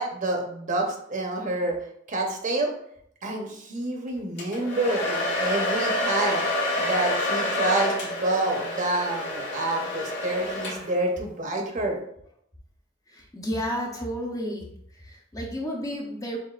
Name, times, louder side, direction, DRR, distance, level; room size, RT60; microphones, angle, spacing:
voice 1, 0.0-1.8 2.1-2.7 3.2-6.4 6.8-12.0, right 2 dB, 45° right, 1 dB, 0.8 m, -28 dB
Domestic sounds home sounds, 4.4-11.1, left 1 dB, 65° left, 1.7 m, -28 dB
voice 2, 13.1-14.6 15.1-16.4, equal, 20° left, -1 dB, 0.7 m, -31 dB
7.1 x 2.6 x 2.4 m, 0.70 s
head